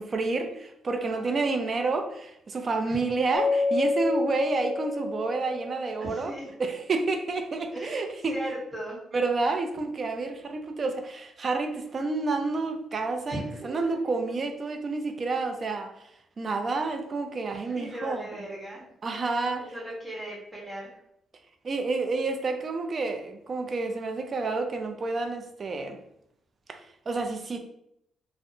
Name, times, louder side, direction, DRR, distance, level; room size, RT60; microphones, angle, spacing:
voice 1, 0.0-6.3 6.6-8.4 9.1-16.1 16.4-18.2 19.0-19.7 21.6-26.0 26.7-27.6, right 3 dB, 40° right, 6 dB, 0.4 m, -29 dB
voice 2, 0.9-1.3 2.8-3.0 6.0-6.5 7.7-9.0 13.3-14.0 17.6-18.8 19.6-20.9, equal, 10° right, -5 dB, 1.1 m, -38 dB
Mallet percussion, 3.3-6.3, left 3 dB, 75° left, 0.6 m, -29 dB
2.7 x 2.0 x 2.6 m, 0.76 s
cardioid pair, 90°, 0 cm